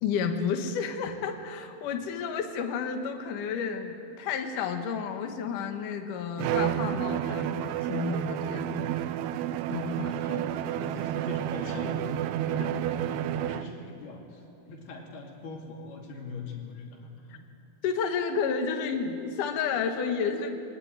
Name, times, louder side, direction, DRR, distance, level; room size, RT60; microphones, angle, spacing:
voice 1, 0.0-8.9 9.7-10.2 17.8-20.5, left 6 dB, 65° left, 5 dB, 2.7 m, -31 dB
Bowed string instrument, 6.4-13.8, right 12 dB, 90° right, 2.7 m, -30 dB
voice 2, 10.1-17.5, left 3 dB, 90° left, 0 dB, 4.6 m, -41 dB
23.5 x 19.0 x 9.0 m, 2.6 s
omnidirectional pair, 4.4 m